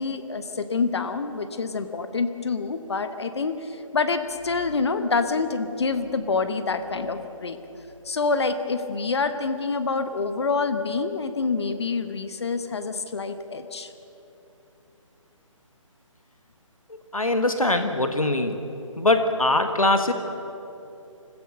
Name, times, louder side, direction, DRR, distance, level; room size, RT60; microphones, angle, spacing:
voice 1, 0.0-7.6 8.0-13.9, left 4 dB, 50° left, 9 dB, 1.2 m, -27 dB
voice 2, 17.1-18.6 19.0-20.1, left 2 dB, 85° left, 7 dB, 1.6 m, -22 dB
25.5 x 16.0 x 6.6 m, 3.0 s
figure-of-eight pair, 145°, 17 cm